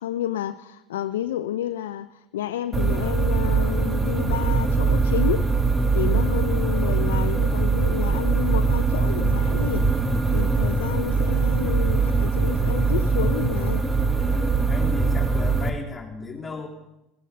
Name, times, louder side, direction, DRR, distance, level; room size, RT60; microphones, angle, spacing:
voice 1, 0.0-5.5 5.9-9.9 10.3-13.8, left 11 dB, 85° left, 0.5 m, -30 dB
sound 1, 2.7-15.7, right 4 dB, 20° right, 1.6 m, -22 dB
voice 2, 14.1-16.7, left 4 dB, 20° left, 3.1 m, -36 dB
17.5 x 14.5 x 5.5 m
hypercardioid pair, 80°, 0 cm